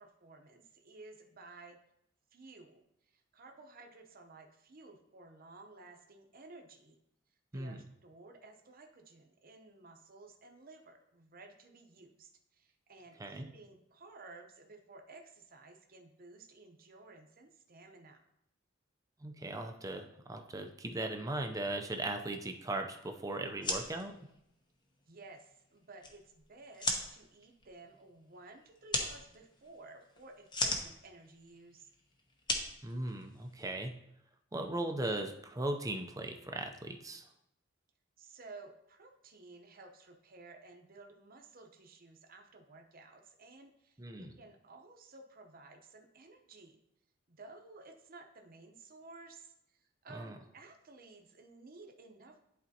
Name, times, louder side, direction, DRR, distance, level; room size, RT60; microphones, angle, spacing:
voice 1, 0.0-1.8 2.3-7.0 7.5-18.2 25.1-31.9 38.2-44.0 44.4-46.8 47.3-52.5, right 3 dB, 50° right, 4 dB, 0.8 m, -55 dB
voice 2, 19.2-24.1 32.8-33.9 34.5-37.3 44.0-44.3 50.1-50.4, right 2 dB, 20° right, 4 dB, 0.5 m, -38 dB
sound 1, 23.5-33.7, left 2 dB, 25° left, 0.8 m, -40 dB
10.5 x 4.2 x 2.8 m, 0.78 s
head